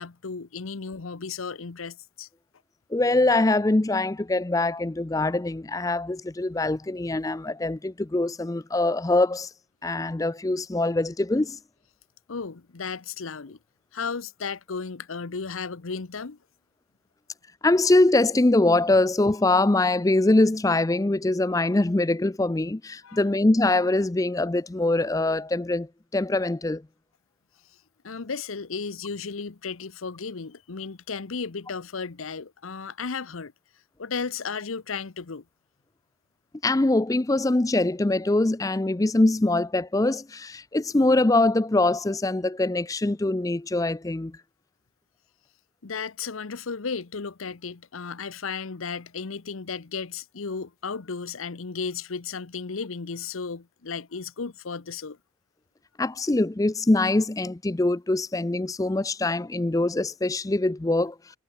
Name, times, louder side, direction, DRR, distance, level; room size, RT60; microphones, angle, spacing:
voice 1, 0.0-2.3 12.3-13.6 13.9-16.4 23.0-23.2 28.0-33.5 34.0-35.4 45.8-55.2, left 5 dB, 90° left, 0.9 m, -34 dB
voice 2, 2.9-9.5 9.8-11.6 17.6-25.9 26.1-26.8 36.6-44.3 56.0-61.2, left 2 dB, 15° left, 0.4 m, -23 dB
head